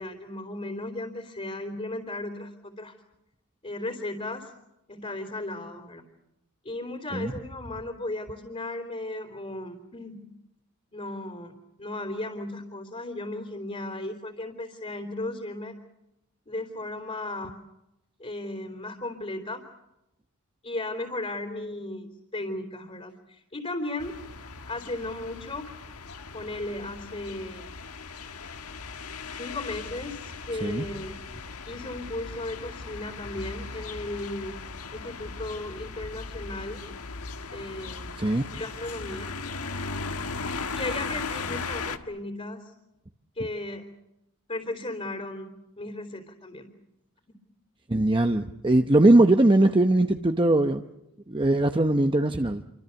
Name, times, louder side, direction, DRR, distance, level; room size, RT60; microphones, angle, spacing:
voice 1, 0.0-2.9 3.6-4.5 4.9-6.0 6.7-10.2 10.9-15.7 16.5-17.5 18.2-19.6 20.6-24.1 24.7-25.7 26.3-27.6 29.4-31.2 31.7-34.5 34.9-36.8 37.5-38.2 38.5-39.3 40.8-42.7 43.4-43.8 44.5-46.7, left 2 dB, 30° left, 4 dB, 3.4 m, -35 dB
sound 1, 24.0-42.0, left 4 dB, 80° left, 1.5 m, -38 dB
voice 2, 38.2-38.5 47.9-50.8 51.3-52.6, right 1 dB, 20° right, 6 dB, 0.8 m, -21 dB
28.0 x 24.5 x 7.1 m, 0.88 s
head